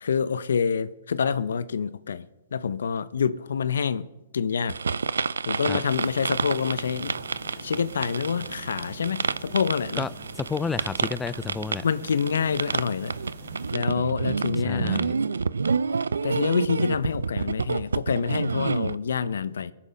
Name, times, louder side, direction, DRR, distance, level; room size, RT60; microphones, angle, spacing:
voice 1, 0.0-2.3 2.5-4.1 4.3-4.8 5.5-7.1 7.5-10.0 11.8-13.1 13.7-15.0 16.2-19.7, left 6 dB, 80° left, 0.7 m, -27 dB
sound 1, 4.7-19.0, right 5 dB, 90° right, 0.4 m, -29 dB
sound 2, 5.8-13.7, right 1 dB, 70° right, 4.0 m, -44 dB
voice 2, 10.3-11.9 14.6-15.1, left 4 dB, 10° left, 0.4 m, -31 dB
22.0 x 7.5 x 5.1 m
hypercardioid pair, 130°, 0 cm